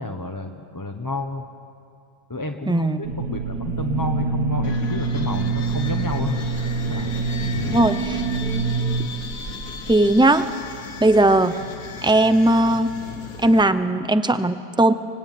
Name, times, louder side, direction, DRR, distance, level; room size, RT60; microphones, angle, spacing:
voice 1, 0.0-1.5 2.3-6.4 6.9-7.1 7.5-7.9, left 2 dB, 15° left, 4 dB, 0.8 m, -30 dB
voice 2, 2.7-3.0 7.7-8.2 9.9-10.5 11.0-11.6 12.0-12.9 13.4-14.9, right 1 dB, 5° right, 11 dB, 0.4 m, -18 dB
sound 1, 3.0-10.2, right 4 dB, 80° right, 1.8 m, -26 dB
sound 2, 4.6-13.6, left 5 dB, 70° left, 1.7 m, -37 dB
25.0 x 21.5 x 9.4 m, 2.4 s
omnidirectional pair, 1.5 m